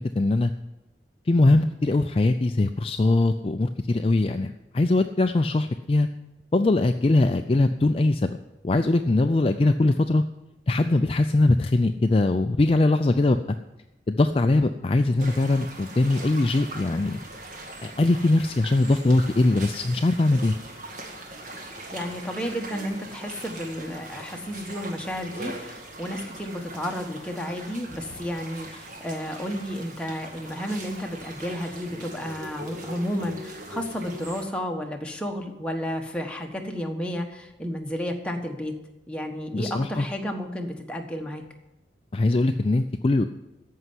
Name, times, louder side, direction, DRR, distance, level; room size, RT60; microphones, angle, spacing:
voice 1, 0.2-0.5 1.3-6.1 6.5-8.4 8.6-10.2 10.7-13.4 14.1-17.2 17.8-20.5 39.5-40.1 42.1-43.3, left 2 dB, 30° left, 7 dB, 0.4 m, -21 dB
sound 1, 15.2-34.4, right 1 dB, 45° right, 1.9 m, -41 dB
voice 2, 21.9-38.7 39.1-41.4, equal, 5° left, 2 dB, 1.3 m, -32 dB
14.0 x 5.6 x 9.6 m, 0.98 s
head